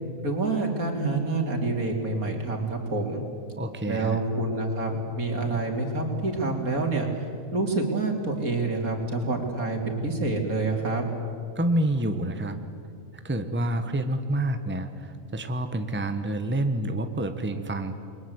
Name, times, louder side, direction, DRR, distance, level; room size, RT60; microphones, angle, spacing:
voice 1, 0.2-3.2 3.9-7.1 7.5-11.1, right 3 dB, 85° right, 2 dB, 3.6 m, -27 dB
voice 2, 3.6-4.2 11.5-12.5 13.2-17.9, right 1 dB, 10° right, 8 dB, 1.2 m, -28 dB
29.5 x 22.0 x 8.1 m, 2.5 s
omnidirectional pair, 1.5 m